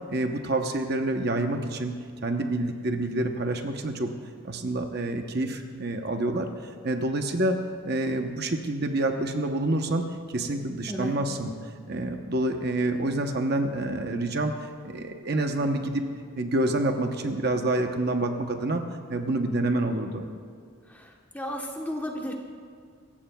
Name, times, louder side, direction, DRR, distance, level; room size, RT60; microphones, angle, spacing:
voice 1, 0.1-4.1 4.4-7.6 7.8-11.5 11.9-16.1 16.4-20.3, right 2 dB, 45° right, 5 dB, 0.9 m, -28 dB
voice 2, 20.9-22.3, equal, 10° left, 0 dB, 1.1 m, -34 dB
26.5 x 14.5 x 2.3 m, 2.1 s
head